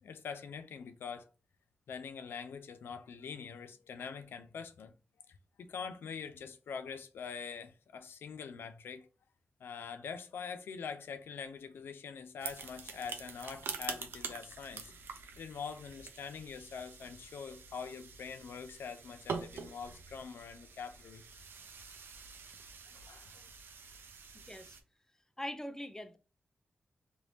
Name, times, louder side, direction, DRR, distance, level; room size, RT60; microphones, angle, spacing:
voice 1, 0.0-1.3 1.9-4.9 5.3-9.1 9.6-14.9 15.4-21.2 22.9-23.5, left 6 dB, 85° left, 0.4 m, -44 dB
sound 1, 12.4-24.8, right 5 dB, 85° right, 0.5 m, -46 dB
voice 2, 24.5-24.8 25.4-26.2, left 1 dB, 15° left, 0.5 m, -42 dB
3.2 x 2.6 x 3.0 m
cardioid pair, 50°, 4 cm